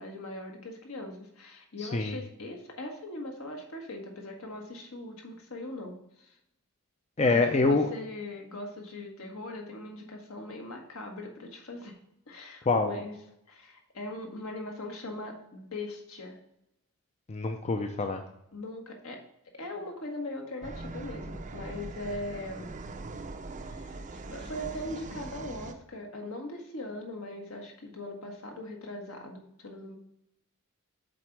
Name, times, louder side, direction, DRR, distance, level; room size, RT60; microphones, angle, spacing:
voice 1, 0.0-6.4 7.2-12.0 12.3-13.1 13.5-16.4 18.5-19.2 19.5-22.7 23.6-30.0, left 1 dB, 70° left, 2 dB, 1.4 m, -40 dB
voice 2, 7.2-7.9 12.7-12.9 17.3-18.2, left 3 dB, 30° left, 5 dB, 0.5 m, -25 dB
sound 1, 20.6-25.7, right 2 dB, 35° right, 0.5 m, -41 dB
7.8 x 3.9 x 4.6 m, 0.80 s
head